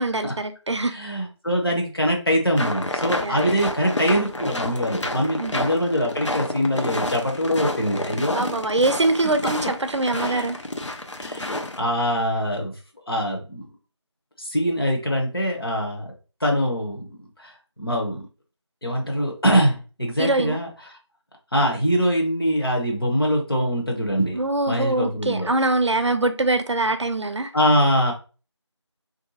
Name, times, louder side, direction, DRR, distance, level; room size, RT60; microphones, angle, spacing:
voice 1, 0.0-0.9 3.2-3.5 5.4-5.6 8.3-10.6 20.2-20.6 24.3-27.5, right 2 dB, 70° right, 0.5 m, -23 dB
voice 2, 0.8-8.4 10.1-10.5 11.2-12.7 13.1-13.7 14.4-16.0 16.4-17.5 17.8-18.2 18.8-20.7 21.5-24.4 24.7-25.5 27.5-28.1, equal, 50° left, 0.9 m, -23 dB
sound 1, 2.6-11.8, left 1 dB, 75° left, 0.6 m, -30 dB
3.2 x 2.6 x 2.8 m
figure-of-eight pair, 180°, 15 cm